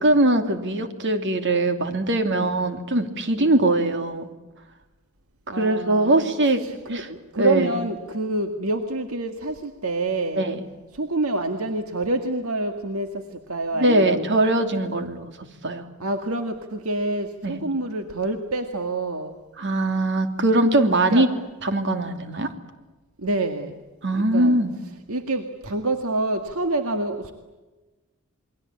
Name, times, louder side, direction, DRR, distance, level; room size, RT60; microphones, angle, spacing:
voice 1, 0.0-4.3 5.6-6.6 6.9-7.1 7.4-7.7 10.4-10.6 13.8-15.8 17.4-17.6 19.6-21.3 21.6-22.5 24.0-24.7, right 1 dB, 55° right, 7 dB, 2.8 m, -21 dB
voice 2, 5.5-6.3 6.6-10.5 11.0-13.1 13.5-14.3 16.0-19.3 21.1-21.3 23.2-23.7 24.1-24.6 25.1-27.3, right 2 dB, 70° right, 6 dB, 1.9 m, -27 dB
29.0 x 22.5 x 8.7 m, 1.2 s
head